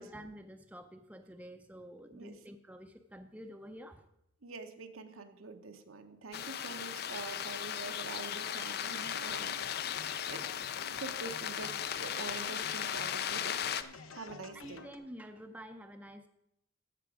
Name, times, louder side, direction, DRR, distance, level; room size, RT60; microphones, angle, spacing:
voice 1, 0.0-4.1 14.5-16.3, equal, 5° right, 7 dB, 0.5 m, -49 dB
voice 2, 4.4-9.8 10.2-10.5 11.0-13.8 14.1-14.8, right 3 dB, 85° right, 7 dB, 0.9 m, -46 dB
sound 1, 6.3-13.8, left 9 dB, 50° left, 0.4 m, -37 dB
sound 2, 9.0-15.0, left 4 dB, 80° left, 0.9 m, -50 dB
14.5 x 5.9 x 4.9 m, 0.83 s
head